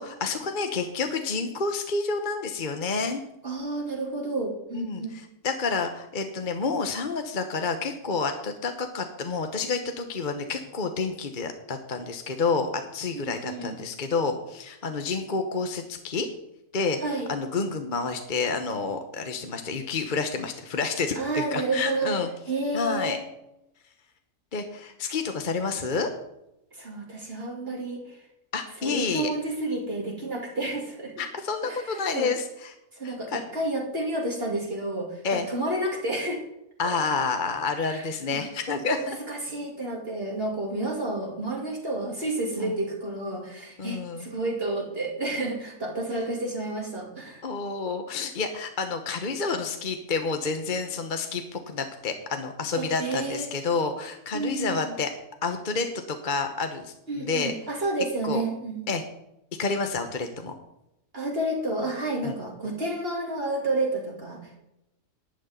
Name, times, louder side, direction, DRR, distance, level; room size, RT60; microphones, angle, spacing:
voice 1, 0.0-3.2 4.7-16.3 16.7-17.0 17.3-22.3 22.7-23.2 24.5-26.1 28.5-29.3 31.2-32.7 33.0-33.5 35.2-35.5 36.8-39.0 42.6-42.8 43.8-44.3 47.4-55.1 55.4-57.5 58.2-58.4 58.9-59.0 59.6-60.5 62.2-62.3, left 4 dB, 40° left, 6 dB, 1.1 m, -29 dB
voice 2, 3.4-5.1 13.1-13.8 17.0-17.3 21.1-22.2 22.5-23.2 26.7-28.2 28.8-31.2 31.6-32.3 32.9-36.4 37.8-38.0 38.8-47.4 52.7-53.5 54.3-54.9 57.1-58.8 61.1-64.6, right 2 dB, 45° right, -2 dB, 2.6 m, -30 dB
11.5 x 6.4 x 9.3 m, 0.85 s
omnidirectional pair, 1.4 m